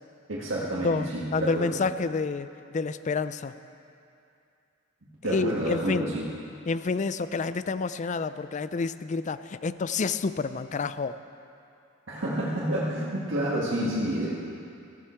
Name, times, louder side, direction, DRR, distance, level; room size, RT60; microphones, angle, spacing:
voice 1, 0.3-1.8 5.0-6.3 12.1-14.3, right 1 dB, 70° right, -7 dB, 1.9 m, -29 dB
voice 2, 0.8-3.5 5.2-6.1 6.7-11.2, left 4 dB, 40° left, 13 dB, 0.4 m, -29 dB
17.5 x 14.0 x 4.5 m, 2.6 s
head